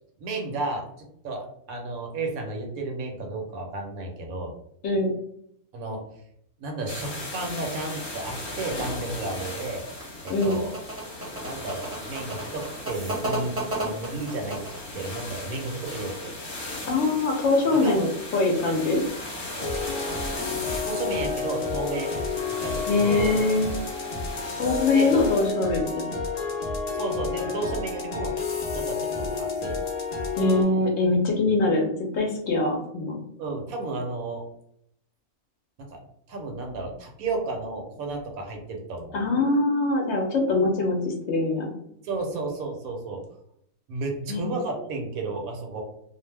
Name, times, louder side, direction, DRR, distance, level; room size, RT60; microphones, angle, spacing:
voice 1, 0.2-0.8 1.2-4.5 5.7-6.0 6.6-9.8 10.2-10.7 11.4-13.5 13.8-14.6 14.9-16.3 17.8-18.1 20.8-22.1 22.6-23.3 24.9-25.1 26.9-28.3 28.7-29.7 33.4-34.4 35.9-36.0 36.3-39.2 42.0-43.2 43.9-45.8, right 3 dB, 85° right, 2 dB, 1.2 m, -32 dB
voice 2, 4.8-5.1 10.3-10.6 16.8-18.1 18.3-19.0 22.9-23.7 24.6-26.1 30.4-33.2 39.1-41.7 44.3-44.4, left 3 dB, 65° left, 1 dB, 0.8 m, -23 dB
sound 1, 6.9-25.5, left 2 dB, 40° left, 0.9 m, -38 dB
sound 2, 10.0-14.9, right 2 dB, 35° right, 0.7 m, -33 dB
sound 3, 19.6-30.6, left 4 dB, 80° left, 0.3 m, -30 dB
2.6 x 2.1 x 3.2 m, 0.72 s
omnidirectional pair, 1.5 m